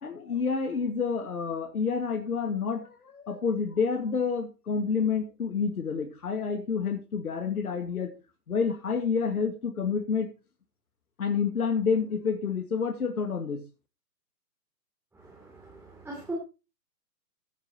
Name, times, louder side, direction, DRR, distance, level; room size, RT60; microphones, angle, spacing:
voice 1, 0.0-8.1 8.5-10.3 11.2-13.6, left 5 dB, 60° left, 8 dB, 2.0 m, -29 dB
voice 2, 15.1-16.3, right 2 dB, 5° right, -2 dB, 3.0 m, -41 dB
15.5 x 9.2 x 3.0 m, 0.29 s
figure-of-eight pair, 130°, 48 cm